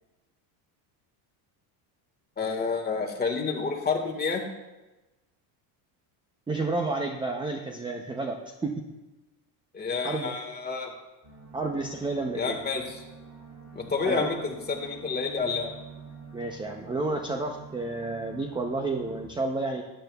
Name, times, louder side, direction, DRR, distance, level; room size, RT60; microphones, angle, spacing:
voice 1, 2.4-4.4 9.7-10.9 12.3-13.0 13.7-15.7, left 5 dB, 20° left, 2 dB, 1.6 m, -29 dB
voice 2, 6.5-8.8 10.0-10.3 11.5-12.6 14.1-14.3 16.3-19.8, right 3 dB, 10° right, 3 dB, 0.6 m, -30 dB
sound 1, 11.2-19.3, right 5 dB, 35° right, 2.9 m, -47 dB
13.0 x 10.0 x 2.3 m, 1.1 s
supercardioid pair, 115°, 46 cm